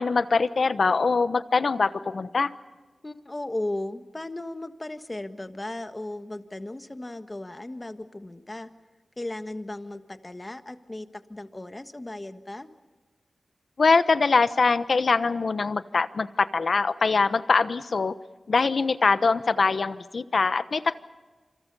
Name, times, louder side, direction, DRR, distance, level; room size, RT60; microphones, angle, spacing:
voice 1, 0.0-2.5 13.8-18.1 18.5-21.0, left 4 dB, 70° left, 13 dB, 1.0 m, -23 dB
voice 2, 3.0-8.7 9.2-12.7, left 1 dB, 25° left, 9 dB, 1.5 m, -36 dB
27.5 x 26.5 x 5.5 m, 1.3 s
wide cardioid pair, 65°, 0 cm